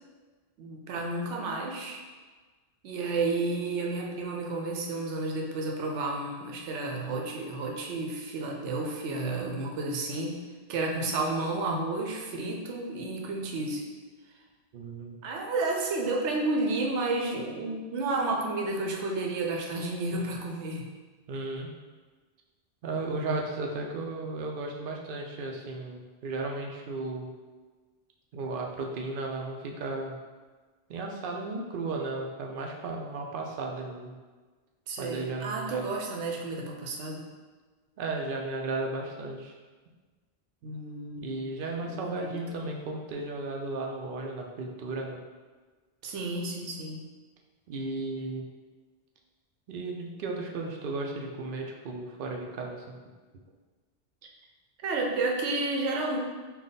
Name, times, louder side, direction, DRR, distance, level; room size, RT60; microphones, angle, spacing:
voice 1, 0.6-2.0 2.8-10.4 10.7-13.8 15.2-20.9 34.9-37.3 40.6-41.4 41.8-42.7 46.0-47.1 54.8-56.2, right 2 dB, 85° right, 0 dB, 0.9 m, -31 dB
voice 2, 14.7-15.1 21.3-21.7 22.8-27.3 28.3-30.2 30.9-34.1 35.0-35.9 38.0-39.5 41.2-45.2 47.7-48.4 49.7-53.0, right 3 dB, 60° right, 1 dB, 0.6 m, -35 dB
3.5 x 2.2 x 4.0 m, 1.4 s
omnidirectional pair, 1.1 m